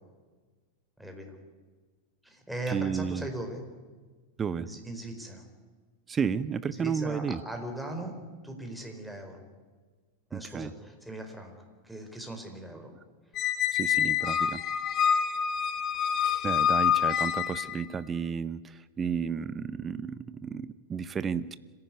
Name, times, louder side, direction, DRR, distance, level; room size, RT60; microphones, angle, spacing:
voice 1, 1.0-1.3 2.2-3.6 4.6-5.4 6.7-8.1 8.4-9.4 10.3-11.5 11.8-12.9, right 1 dB, ahead, 3 dB, 4.6 m, -39 dB
voice 2, 2.7-3.3 4.4-4.7 6.1-7.4 10.3-10.7 13.7-14.6 16.4-21.6, right 6 dB, 20° right, 17 dB, 0.7 m, -32 dB
Squeak, 13.4-17.8, left 8 dB, 35° left, 1.3 m, -27 dB
25.5 x 15.5 x 9.6 m, 1.4 s
figure-of-eight pair, 90°, 0 cm